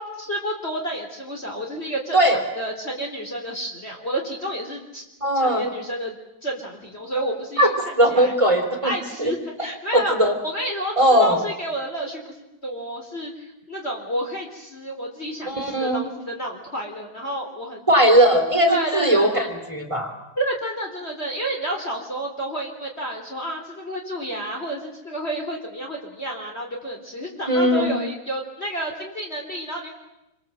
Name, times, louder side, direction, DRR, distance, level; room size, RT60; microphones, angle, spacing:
voice 1, 0.0-2.2 2.6-5.0 5.3-6.2 6.4-7.7 8.1-8.3 8.8-10.1 10.4-10.9 11.2-12.3 12.6-17.9 18.7-19.5 20.4-29.9, right 1 dB, 30° left, 1 dB, 3.8 m, -30 dB
voice 2, 5.2-5.7 7.6-7.7 8.0-8.9 9.2-9.3 9.6-10.4 11.0-11.4 15.5-16.0 17.9-20.1 27.5-28.0, right 1 dB, 15° right, 4 dB, 3.6 m, -19 dB
27.0 x 26.0 x 7.8 m, 0.93 s
omnidirectional pair, 2.1 m